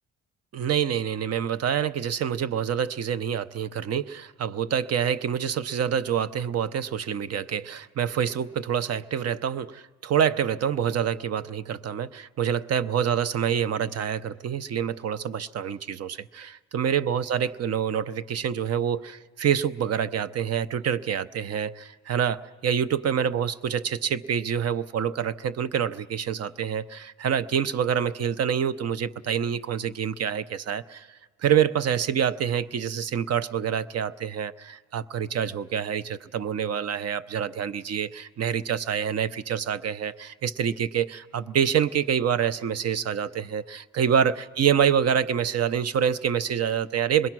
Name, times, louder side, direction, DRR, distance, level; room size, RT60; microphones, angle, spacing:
voice 1, 0.5-47.3, right 8 dB, 55° right, 16 dB, 0.7 m, -26 dB
26.5 x 21.5 x 6.1 m, 1.4 s
cardioid pair, 90°, 30 cm